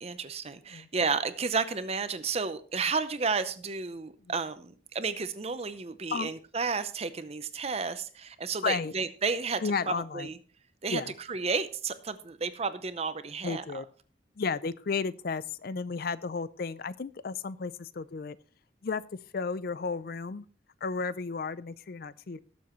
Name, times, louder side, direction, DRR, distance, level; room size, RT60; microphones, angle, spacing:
voice 1, 0.0-9.6 10.1-10.4 10.8-11.0 11.3-13.6, right 4 dB, 35° right, 12 dB, 0.7 m, -32 dB
voice 2, 8.6-8.9 9.6-10.3 10.9-11.1 13.4-13.9 14.4-18.4 18.8-19.0 19.3-20.5 20.8-22.4, left 5 dB, 50° left, 18 dB, 0.5 m, -33 dB
18.5 x 7.1 x 3.1 m, 0.40 s
head